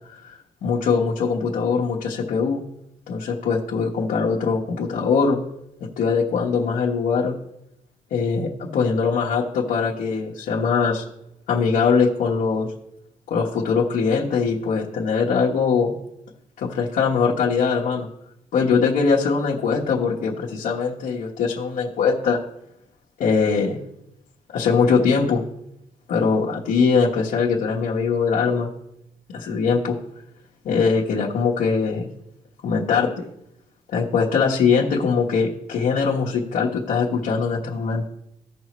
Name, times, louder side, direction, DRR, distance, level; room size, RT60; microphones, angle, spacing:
voice 1, 0.1-2.6 3.1-5.4 6.0-7.3 8.1-11.0 11.5-12.7 13.3-16.0 16.6-18.1 18.5-22.4 23.2-23.8 24.5-25.4 26.1-28.7 29.3-30.0 30.6-32.1 32.6-33.2 33.9-38.1, left 5 dB, 85° left, -4 dB, 1.2 m, -21 dB
15.5 x 5.5 x 3.1 m, 0.81 s
cardioid pair, 125°, 14 cm